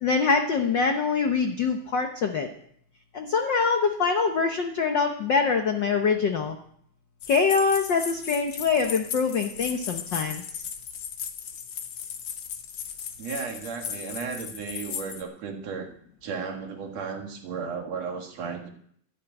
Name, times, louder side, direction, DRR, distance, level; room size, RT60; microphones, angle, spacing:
voice 1, 0.0-2.5 3.1-6.6 7.3-10.4, left 5 dB, 75° left, 5 dB, 1.0 m, -24 dB
sound 1, 7.2-15.2, left 8 dB, 55° left, 1.7 m, -36 dB
voice 2, 13.2-15.9 16.2-18.7, right 5 dB, 60° right, 3 dB, 2.8 m, -34 dB
13.0 x 9.3 x 9.1 m, 0.67 s
omnidirectional pair, 3.6 m